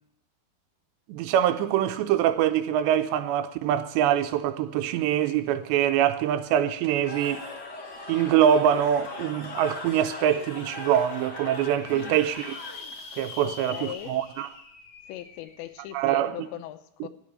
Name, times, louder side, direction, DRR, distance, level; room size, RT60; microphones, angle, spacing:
voice 1, 1.1-7.4 8.1-12.6 13.2-14.5 15.9-16.4, right 10 dB, 85° right, 2.8 m, -24 dB
Cheering / Crowd, 6.8-13.2, left 3 dB, 45° left, 1.3 m, -40 dB
sound 1, 6.9-7.0 7.3-9.4 10.0-10.1 10.5-10.6 10.8-10.9 11.4-16.0, left 4 dB, 65° left, 1.6 m, -45 dB
voice 2, 13.4-14.2 15.1-17.1, left 13 dB, 85° left, 3.0 m, -40 dB
10.0 x 8.8 x 9.7 m
omnidirectional pair, 5.1 m